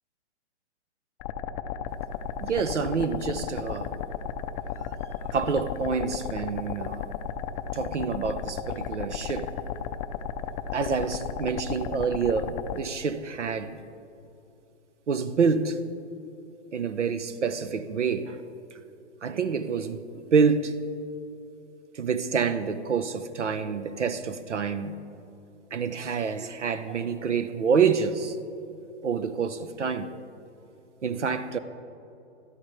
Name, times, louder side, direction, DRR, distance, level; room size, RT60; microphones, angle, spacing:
sound 1, 1.2-12.8, left 8 dB, 20° left, 0.5 m, -34 dB
voice 1, 2.4-3.9 5.3-7.1 7.7-9.5 10.7-13.8 15.1-15.8 16.7-18.4 19.2-20.7 21.9-25.0 25.7-28.4 29.0-30.1 31.0-31.6, right 5 dB, 80° right, 12 dB, 1.2 m, -27 dB
28.5 x 13.0 x 3.3 m, 2.8 s
hypercardioid pair, 135°, 35 cm